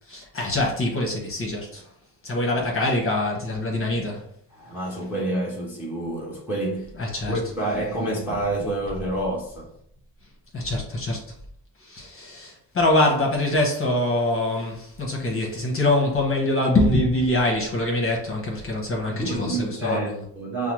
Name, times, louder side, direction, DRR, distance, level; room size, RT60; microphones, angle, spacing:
voice 1, 0.1-1.8 2.2-4.2 7.0-7.4 10.5-11.2 11.8-20.1, left 1 dB, 30° left, 0.9 m, -24 dB
voice 2, 4.5-6.9 7.3-9.7 19.1-20.7, right 1 dB, 5° right, 0.7 m, -28 dB
5.4 x 2.0 x 3.0 m
wide cardioid pair, 160°, 43 cm